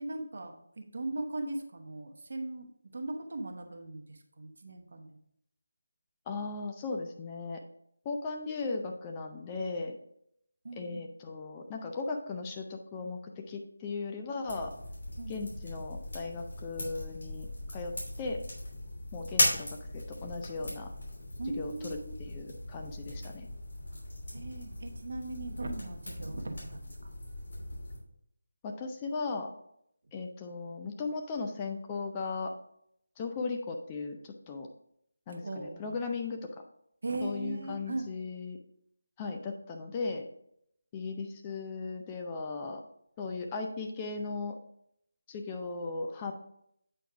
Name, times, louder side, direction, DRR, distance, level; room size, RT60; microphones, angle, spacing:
voice 1, 0.0-2.7 2.9-5.1 10.6-11.1 15.2-15.5 21.4-22.1 23.9-24.0 24.3-27.1 35.3-36.0 37.0-38.1, right 2 dB, 50° right, 4 dB, 1.0 m, -39 dB
voice 2, 6.3-7.6 8.0-10.0 10.8-14.7 15.3-18.4 19.1-20.9 21.6-23.5 28.6-29.5 30.1-32.5 33.2-34.7 35.3-36.5 37.2-38.6 39.2-40.3 40.9-42.8 43.2-44.6 45.3-46.3, left 4 dB, 15° left, 3 dB, 0.4 m, -37 dB
sound 1, 14.5-28.0, left 1 dB, 60° left, 2.8 m, -37 dB
8.1 x 4.5 x 3.5 m, 0.73 s
figure-of-eight pair, 160°, 0 cm